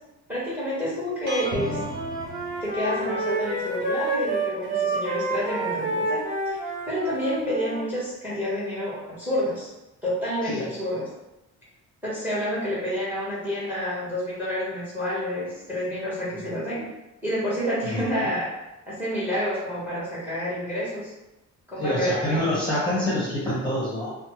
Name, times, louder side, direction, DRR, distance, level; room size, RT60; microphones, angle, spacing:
voice 1, 0.3-1.8 2.6-6.6 6.9-9.7 10.0-11.1 12.0-16.9 17.2-18.5 18.9-21.1 21.7-22.1, equal, 5° right, -8 dB, 1.0 m, -29 dB
sound 1, 1.3-3.3, right 1 dB, 60° right, 0.6 m, -34 dB
Wind instrument woodwind instrument, 1.5-7.8, right 2 dB, 25° right, 1.3 m, -29 dB
voice 2, 21.8-24.1, left 1 dB, 15° left, -9 dB, 0.8 m, -26 dB
3.1 x 2.0 x 2.9 m, 0.97 s
cardioid pair, 155°, 31 cm